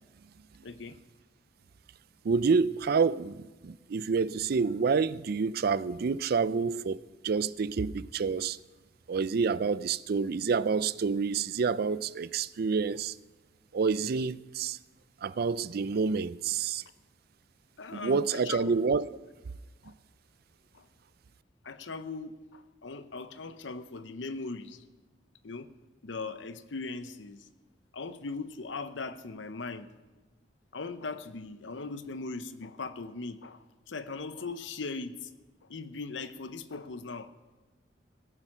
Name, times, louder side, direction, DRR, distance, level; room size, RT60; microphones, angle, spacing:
voice 1, 0.6-1.0 17.8-18.8 19.8-19.9 20.7-20.9 21.6-24.8 25.4-25.7 26.0-27.5 27.9-29.9 30.7-35.3 35.6-37.3, left 3 dB, 85° left, 0.8 m, -39 dB
voice 2, 2.2-7.0 7.2-8.6 9.1-13.1 13.7-14.8 15.2-16.8 17.9-19.2, right 5 dB, 55° right, 0.4 m, -28 dB
17.0 x 9.9 x 6.1 m
head